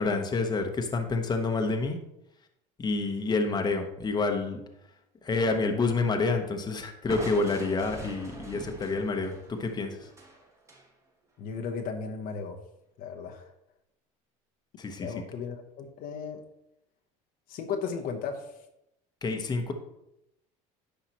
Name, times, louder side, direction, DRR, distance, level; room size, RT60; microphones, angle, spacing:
voice 1, 0.0-2.0 2.8-4.6 5.2-10.1 14.8-15.1 19.2-19.7, left 3 dB, 25° left, 4 dB, 1.0 m, -28 dB
Crushing, 7.1-10.9, right 2 dB, 20° right, 1.6 m, -43 dB
voice 2, 11.4-12.6 13.0-13.5 15.0-16.4 17.5-18.5, left 5 dB, 60° left, 3 dB, 0.9 m, -35 dB
9.9 x 5.7 x 3.0 m, 0.84 s
supercardioid pair, 105°, 17 cm